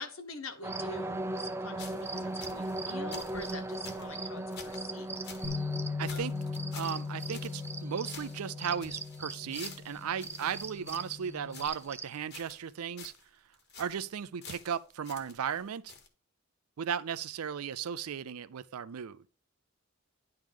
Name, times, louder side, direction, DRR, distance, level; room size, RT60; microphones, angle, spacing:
voice 1, 0.0-5.1 5.4-5.7 6.1-6.3 10.3-10.6, left 2 dB, 70° left, 1.4 m, -45 dB
sound 1, 0.6-12.2, right 2 dB, 10° right, 0.4 m, -39 dB
sound 2, 1.8-5.5 5.8-5.9 6.1-11.9 12.3-12.7 13.0-13.2 13.5-14.0 14.4-15.6 15.9-16.1, left 5 dB, 50° left, 1.4 m, -50 dB
Bass guitar, 5.4-11.7, left 4 dB, 15° left, 1.1 m, -39 dB
voice 2, 6.0-6.3 6.7-13.1 13.8-15.9 16.8-19.2, right 7 dB, 85° right, 0.4 m, -36 dB
10.5 x 3.7 x 4.9 m
head